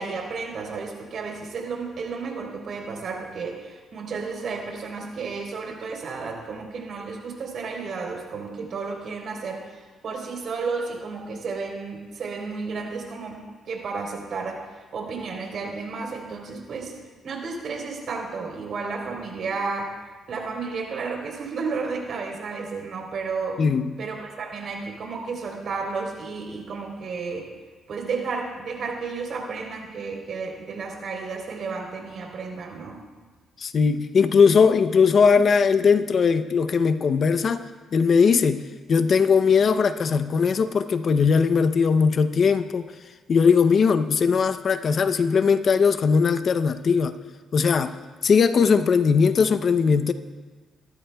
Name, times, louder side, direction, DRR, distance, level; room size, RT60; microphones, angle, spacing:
voice 1, 0.0-16.9 17.2-20.0 20.3-23.6 24.0-27.5 27.9-33.0, right 4 dB, 60° right, 1 dB, 3.6 m, -32 dB
voice 2, 23.6-23.9 33.6-37.6 37.9-38.6 38.9-42.8 43.3-47.1 47.5-47.9 48.2-50.1, left 5 dB, 50° left, 10 dB, 0.6 m, -19 dB
24.0 x 13.0 x 2.3 m, 1.3 s
cardioid pair, 90°, 0 cm